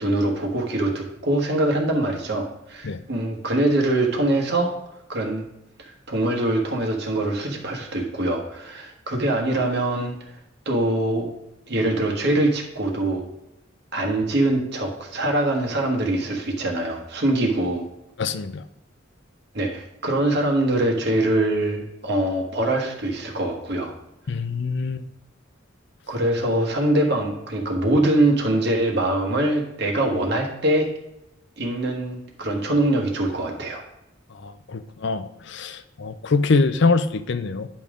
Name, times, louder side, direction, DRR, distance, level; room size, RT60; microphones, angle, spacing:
voice 1, 0.0-4.8 5.1-5.4 5.8-10.1 10.6-11.3 11.7-13.2 13.9-17.8 19.5-23.9 26.1-30.9 31.6-33.8, right 1 dB, 60° right, 0 dB, 1.4 m, -23 dB
voice 2, 18.2-18.6 24.3-25.0 34.4-37.7, left 4 dB, 60° left, 12 dB, 0.5 m, -24 dB
9.9 x 5.3 x 3.7 m, 0.85 s
head